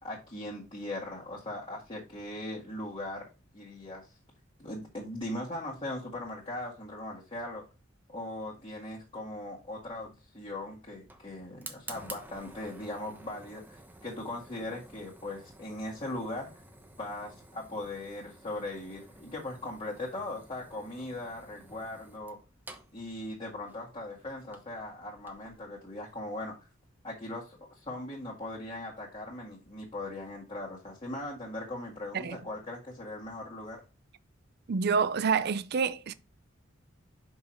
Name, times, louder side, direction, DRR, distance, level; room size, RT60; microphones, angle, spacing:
voice 1, 0.0-4.2 4.6-7.6 8.1-16.6 17.0-22.4 22.9-26.7 27.0-33.8, left 1 dB, 25° left, 1.8 m, -39 dB
Fire, 9.9-25.6, right 2 dB, 10° right, 1.0 m, -52 dB
voice 2, 34.7-36.1, right 5 dB, 55° right, 0.5 m, -27 dB
5.9 x 5.4 x 4.4 m
head